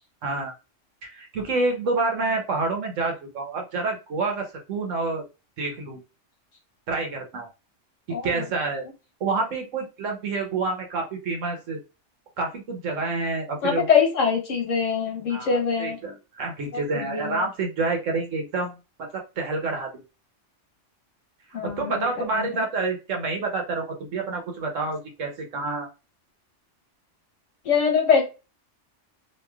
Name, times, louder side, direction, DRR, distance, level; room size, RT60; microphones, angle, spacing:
voice 1, 0.2-0.5 1.0-5.2 5.6-6.0 6.9-7.5 8.2-8.8 9.2-11.8 12.4-13.9 15.3-19.9 21.5-25.9, right 3 dB, 85° right, 3 dB, 1.3 m, -28 dB
voice 2, 8.1-8.4 13.6-16.0 16.7-17.4 21.5-22.6 27.6-28.2, left 6 dB, 80° left, 2 dB, 1.4 m, -23 dB
3.1 x 2.7 x 2.2 m, 0.29 s
omnidirectional pair, 1.3 m